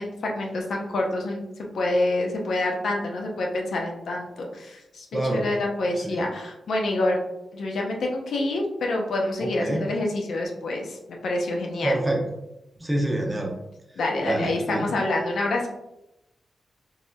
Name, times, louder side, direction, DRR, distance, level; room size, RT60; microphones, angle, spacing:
voice 1, 0.0-7.2 7.5-12.0 14.0-15.7, left 2 dB, 75° left, 0 dB, 0.6 m, -27 dB
voice 2, 9.4-9.9 11.8-12.2 12.8-13.5 14.2-14.8, right 1 dB, 15° right, 0 dB, 0.8 m, -26 dB
3.3 x 2.6 x 2.2 m, 0.90 s
cardioid pair, 60°, 0 cm